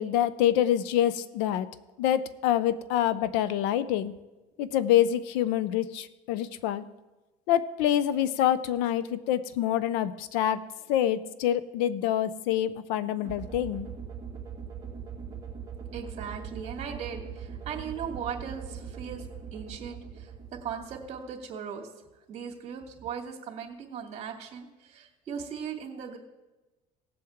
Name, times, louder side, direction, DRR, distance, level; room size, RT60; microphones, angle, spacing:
voice 1, 0.0-1.7 2.0-4.1 4.6-6.9 7.5-10.6 10.9-13.9, left 11 dB, 85° left, 15 dB, 0.7 m, -26 dB
sound 1, 13.2-21.4, right 7 dB, 20° right, 2.2 m, -41 dB
voice 2, 15.9-19.2 19.5-20.3 20.6-21.9 22.3-26.2, right 7 dB, 40° right, 0 dB, 2.5 m, -38 dB
18.0 x 7.7 x 3.6 m, 1.1 s
cardioid pair, 135°, 16 cm